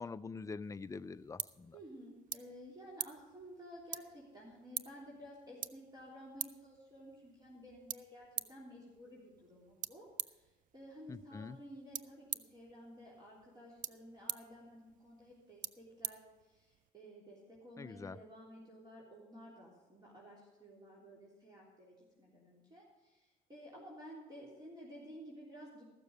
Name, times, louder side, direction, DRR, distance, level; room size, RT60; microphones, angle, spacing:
voice 1, 0.0-1.8 11.1-11.6 17.8-18.2, left 4 dB, 20° left, 13 dB, 0.4 m, -45 dB
sound 1, 0.6-16.9, right 10 dB, 50° right, 0.5 m, -47 dB
voice 2, 1.7-25.8, equal, 25° right, -5 dB, 3.5 m, -54 dB
14.5 x 7.0 x 6.5 m, 1.1 s
cardioid pair, 110°, 17 cm